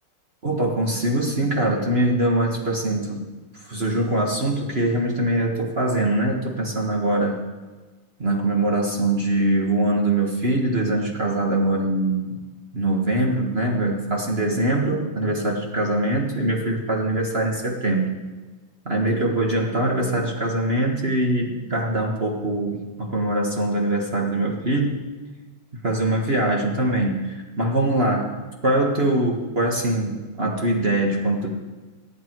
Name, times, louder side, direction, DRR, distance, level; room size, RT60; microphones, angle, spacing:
voice 1, 0.4-3.2 3.5-7.5 8.2-12.4 12.7-18.1 18.8-25.0 25.8-28.3 28.6-31.5, right 1 dB, 30° right, 0 dB, 1.7 m, -23 dB
23.0 x 9.5 x 4.6 m, 1.3 s
omnidirectional pair, 2.2 m